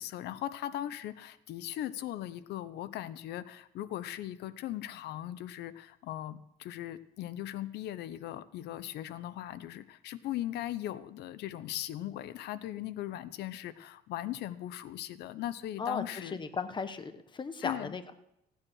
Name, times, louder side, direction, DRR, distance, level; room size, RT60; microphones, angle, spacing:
voice 1, 0.0-16.4 17.6-17.9, left 13 dB, 75° left, 14 dB, 0.9 m, -39 dB
voice 2, 15.8-18.1, left 5 dB, 25° left, 10 dB, 1.1 m, -36 dB
16.0 x 9.6 x 6.3 m, 0.83 s
cardioid pair, 110°, 17 cm